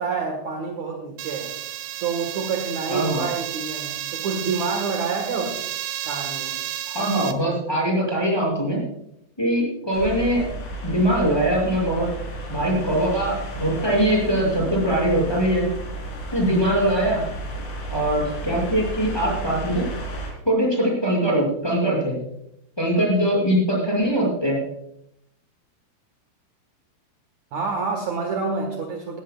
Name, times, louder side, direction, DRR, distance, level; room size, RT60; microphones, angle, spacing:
voice 1, 0.0-1.6 2.0-5.6 6.0-6.6 27.5-29.2, right 4 dB, 65° right, 2 dB, 1.8 m, -27 dB
sound 1, 1.2-7.3, right 13 dB, 85° right, 3.4 m, -32 dB
voice 2, 2.9-3.2 6.9-8.8 9.4-10.5 10.8-12.1 12.5-15.7 16.3-17.2 17.9-19.9 20.5-22.1 22.8-24.6, right 1 dB, 5° left, -4 dB, 6.1 m, -22 dB
sound 2, 9.9-20.3, right 1 dB, 65° left, 5.7 m, -33 dB
17.5 x 16.5 x 2.4 m, 0.75 s
omnidirectional pair, 5.6 m